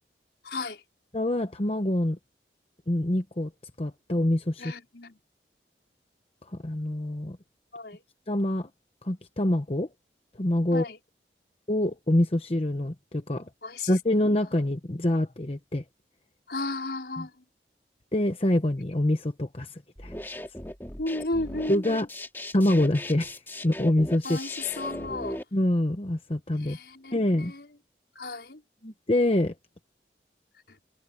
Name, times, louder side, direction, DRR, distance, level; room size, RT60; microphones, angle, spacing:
voice 1, 0.4-0.8 4.6-5.2 7.7-8.0 10.7-11.0 13.6-14.0 16.5-17.4 21.0-22.0 24.2-25.4 26.6-27.7 28.1-28.6 30.7-30.8, left 2 dB, 70° left, 4.5 m, -34 dB
voice 2, 1.1-2.2 2.9-3.5 3.8-4.7 6.5-7.4 8.3-8.7 9.0-9.9 10.4-10.9 11.7-13.5 13.9-15.8 17.2-17.3 18.1-20.1 21.7-22.1 22.5-24.4 25.5-26.8 27.1-27.5 28.8-29.5, left 1 dB, 35° left, 1.0 m, -25 dB
sound 1, 20.0-25.4, left 1 dB, 15° left, 2.5 m, -38 dB
head